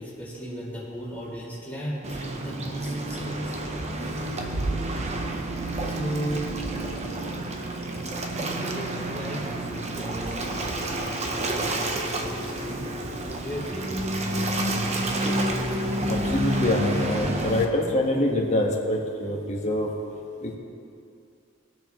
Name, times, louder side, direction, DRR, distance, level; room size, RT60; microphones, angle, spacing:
voice 1, 0.0-3.6 5.8-6.5 8.4-13.9, equal, 10° left, -8 dB, 2.7 m, -36 dB
Waves surf, 2.0-17.6, right 1 dB, 35° right, 0.9 m, -29 dB
voice 2, 16.1-19.9 20.4-20.6, left 1 dB, 35° left, -1 dB, 1.5 m, -25 dB
20.5 x 7.1 x 3.1 m, 2.5 s
head